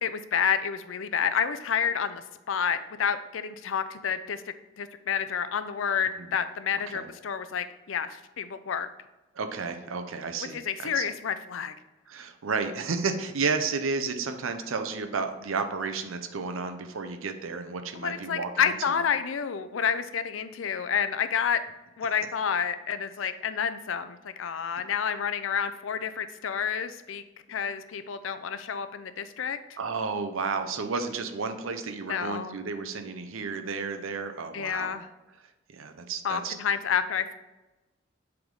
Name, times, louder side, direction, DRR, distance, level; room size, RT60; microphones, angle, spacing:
voice 1, 0.0-4.4 4.8-8.9 10.5-11.7 17.9-21.6 22.0-27.2 27.5-29.8 32.1-32.6 34.5-35.1 36.2-37.3, left 7 dB, 75° left, 12 dB, 0.4 m, -29 dB
voice 2, 9.3-11.0 12.1-18.9 29.8-34.9 35.7-36.5, right 4 dB, 85° right, 7 dB, 0.6 m, -32 dB
7.8 x 3.5 x 3.8 m, 1.1 s
head